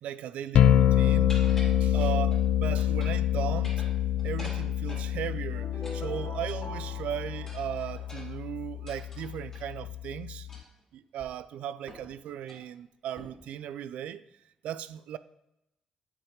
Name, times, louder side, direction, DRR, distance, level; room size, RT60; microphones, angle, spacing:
voice 1, 0.0-1.3 1.8-3.7 4.2-10.5 10.9-14.2 14.6-15.2, right 10 dB, 80° right, 0.3 m, -37 dB
sound 1, 0.5-10.6, left 11 dB, 70° left, 0.3 m, -27 dB
sound 2, 1.3-2.4 2.8-3.3 3.5-5.1 5.8-6.8 7.5-9.7 10.5-10.8 11.2-11.3 11.9-12.1 12.4-12.7 13.2-13.5, left 1 dB, 20° left, 2.4 m, -47 dB
sound 3, 5.5-8.6, left 1 dB, 45° left, 1.0 m, -43 dB
8.9 x 5.0 x 3.2 m
cardioid pair, 160°, 2 cm